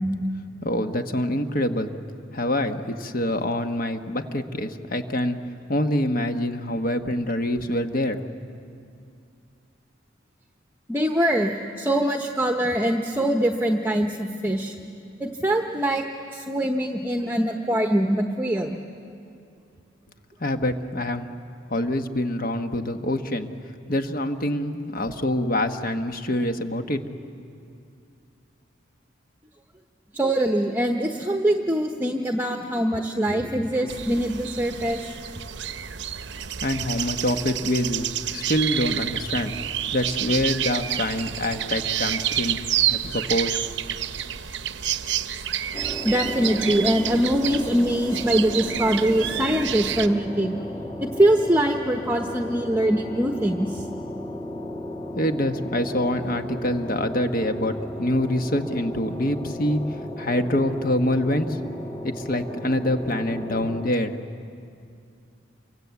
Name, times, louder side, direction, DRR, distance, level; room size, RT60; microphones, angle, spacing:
voice 1, 0.6-1.9 2.3-5.4 5.7-8.2 20.4-21.3 21.7-23.5 23.9-27.0 36.6-39.5 39.9-42.6 42.9-43.6 55.1-61.6 62.0-64.2, left 1 dB, 45° left, 7 dB, 1.3 m, -25 dB
voice 2, 10.9-14.7 15.2-16.0 16.3-18.8 30.1-35.1 46.0-50.6 51.0-53.9, right 1 dB, 10° right, 3 dB, 0.9 m, -23 dB
sound 1, 33.9-50.1, right 10 dB, 65° right, 0.7 m, -29 dB
sound 2, 45.7-63.9, left 1 dB, 20° left, 1.7 m, -35 dB
28.0 x 24.0 x 8.2 m, 2.5 s
head